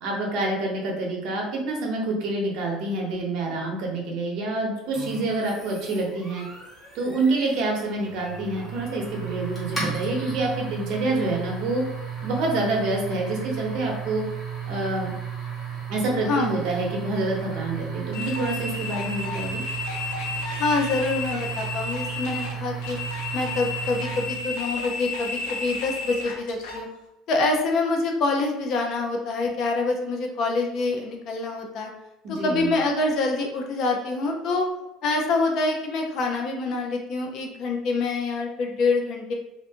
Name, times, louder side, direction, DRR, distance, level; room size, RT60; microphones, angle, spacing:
voice 1, 0.0-6.5 6.9-11.8 12.2-14.2 14.7-15.1 15.9-19.6 32.2-32.7, right 2 dB, 55° right, 0 dB, 0.9 m, -27 dB
sound 1, 4.9-24.5, right 6 dB, 10° left, 1.0 m, -34 dB
sound 2, 18.1-26.8, left 3 dB, 90° left, 0.7 m, -33 dB
voice 2, 20.6-23.0 23.3-26.9 27.3-31.9 32.3-34.6 35.0-39.3, left 3 dB, 45° left, 2 dB, 0.5 m, -26 dB
2.6 x 2.5 x 3.5 m, 0.92 s
cardioid pair, 160°, 0 cm